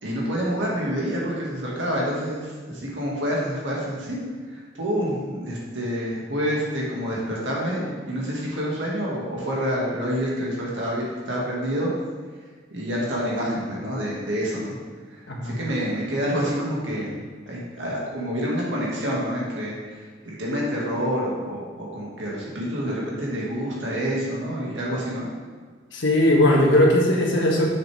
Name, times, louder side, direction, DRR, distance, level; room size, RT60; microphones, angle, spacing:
voice 1, 0.0-4.2 4.5-11.9 12.7-14.8 15.4-19.8 20.2-25.3, equal, 75° right, -4 dB, 2.0 m, -27 dB
voice 2, 25.9-27.7, left 1 dB, 85° left, -1 dB, 1.4 m, -19 dB
7.3 x 6.2 x 3.5 m, 1.5 s
head